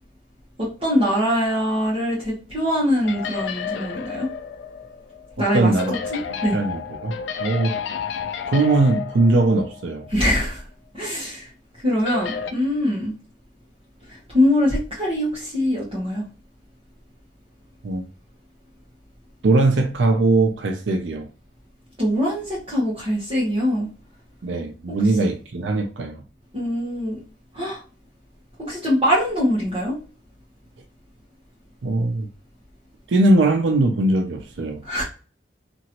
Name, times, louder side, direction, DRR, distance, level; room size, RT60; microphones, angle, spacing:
voice 1, 0.6-4.3 5.4-6.6 10.1-10.6 10.9-11.5 11.8-13.1 14.1-16.3 22.0-23.9 24.9-25.0 26.5-27.2 27.5-27.8 28.6-30.0 34.8-35.0, equal, 30° right, 1.1 m, -23 dB
sound 1, 3.0-10.1 10.4-10.5 12.1-12.5, left 6 dB, 80° left, 0.4 m, -31 dB
voice 2, 5.4-5.9 6.5-7.8 8.5-10.1 17.8-18.0 19.4-21.3 24.4-26.2 31.8-32.3 33.1-34.8, right 2 dB, 90° right, 0.5 m, -20 dB
2.9 x 2.6 x 2.9 m
head